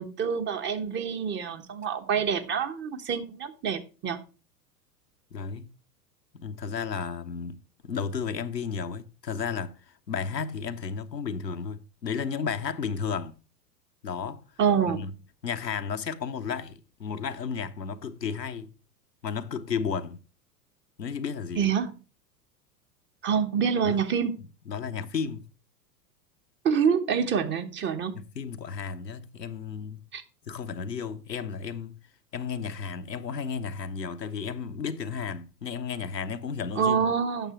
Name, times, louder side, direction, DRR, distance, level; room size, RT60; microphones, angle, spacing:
voice 1, 0.0-4.2 14.6-15.0 21.6-21.9 23.2-24.4 26.6-28.2 30.1-30.2 36.7-37.5, right 7 dB, 25° right, 1.0 m, -26 dB
voice 2, 5.3-5.7 6.3-13.4 14.0-14.5 14.9-15.1 15.4-18.7 19.2-20.2 21.0-21.7 23.8-24.0 24.7-25.5 28.1-30.1 30.5-32.0 32.3-37.1, left 6 dB, 85° left, 0.9 m, -33 dB
9.1 x 6.9 x 4.6 m
figure-of-eight pair, 90°, 49 cm